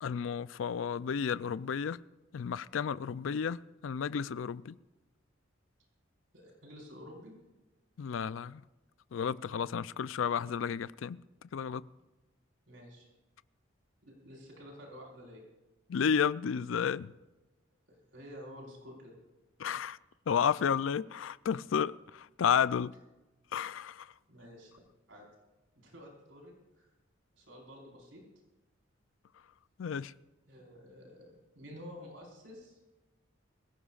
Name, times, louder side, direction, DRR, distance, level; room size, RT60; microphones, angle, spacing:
voice 1, 0.0-2.0 2.3-4.8 8.0-8.6 9.1-11.2 11.5-11.8 15.9-17.1 19.6-20.0 20.3-22.9 23.5-24.1 29.8-30.1, left 7 dB, 85° left, 0.4 m, -32 dB
voice 2, 6.3-7.3 12.7-13.1 14.0-15.4 17.9-19.1 24.3-24.7 25.1-25.3 25.7-26.9 27.3-28.2 30.5-32.8, equal, 75° right, 4.5 m, -50 dB
23.5 x 16.5 x 2.4 m
head